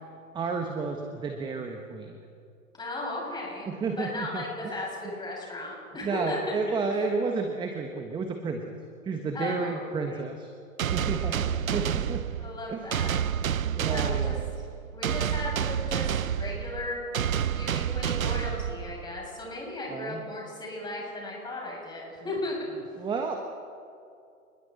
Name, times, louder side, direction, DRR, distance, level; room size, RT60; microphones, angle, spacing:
voice 1, 0.3-2.3 3.7-4.5 4.7-5.1 6.0-10.5 10.9-12.2 12.7-13.0 13.7-14.4 19.9-20.2 23.0-23.4, right 4 dB, 10° right, 4 dB, 1.3 m, -32 dB
voice 2, 2.8-3.7 4.0-6.4 9.3-9.8 10.1-10.2 11.5-11.8 12.4-13.1 13.8-14.3 14.9-17.0 17.5-22.6, left 2 dB, 10° left, -3 dB, 7.1 m, -36 dB
sound 1, 10.8-19.3, right 9 dB, 75° right, 0.8 m, -29 dB
28.5 x 21.0 x 4.3 m, 2.5 s
hypercardioid pair, 125°, 42 cm